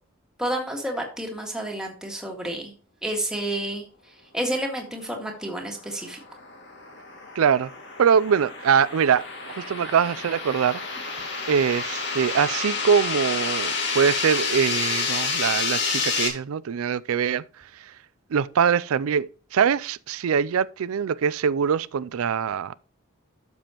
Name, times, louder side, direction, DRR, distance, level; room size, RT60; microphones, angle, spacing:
voice 1, 0.4-2.7 3.0-3.8 4.3-6.2, right 1 dB, 5° right, 1.8 m, -30 dB
sound 1, 5.8-16.3, left 4 dB, 55° left, 2.2 m, -29 dB
voice 2, 7.4-7.7 8.0-9.3 9.6-10.8 11.5-17.4 17.8-17.9 18.3-22.8, right 7 dB, 90° right, 0.4 m, -23 dB
12.0 x 7.0 x 3.0 m
head